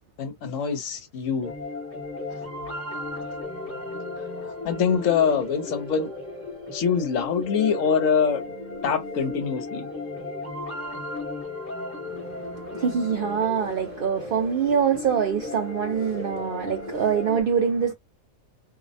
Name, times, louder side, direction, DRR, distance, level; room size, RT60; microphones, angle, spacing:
voice 1, 0.2-1.5 3.2-3.3 4.4-6.1 6.7-8.4 8.8-9.9, left 6 dB, 70° left, 1.0 m, -24 dB
sound 1, 1.4-17.4, left 2 dB, 15° left, 0.8 m, -35 dB
voice 2, 12.7-17.9, right 7 dB, 70° right, 0.5 m, -24 dB
2.6 x 2.0 x 2.6 m
omnidirectional pair, 1.4 m